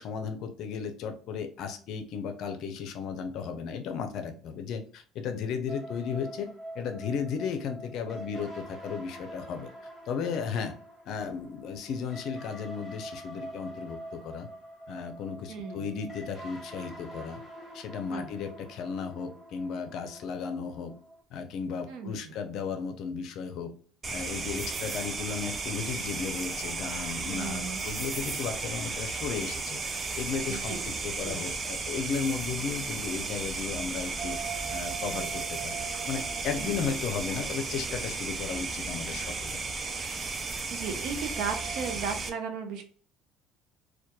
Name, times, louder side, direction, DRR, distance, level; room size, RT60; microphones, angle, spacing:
voice 1, 0.0-6.5 6.7-9.7 10.1-10.8 11.1-14.5 14.9-17.4 17.7-21.0 21.3-23.7 24.1-34.4 34.7-35.8 36.1-39.6, left 6 dB, 60° left, 7 dB, 0.5 m, -35 dB
sound 1, 5.7-21.2, right 1 dB, 5° left, 0.9 m, -45 dB
voice 2, 15.5-15.9 18.1-18.3 21.9-22.3 24.7-24.8 27.3-27.8 30.5-30.8 31.2-31.4 36.6-36.8 40.7-42.8, right 5 dB, 70° right, 5 dB, 0.6 m, -36 dB
sound 2, 24.0-42.3, right 4 dB, 25° right, 0.3 m, -34 dB
sound 3, 34.2-42.0, right 7 dB, 50° right, 1.0 m, -43 dB
2.9 x 2.2 x 2.2 m, 0.43 s
cardioid pair, 135°, 0 cm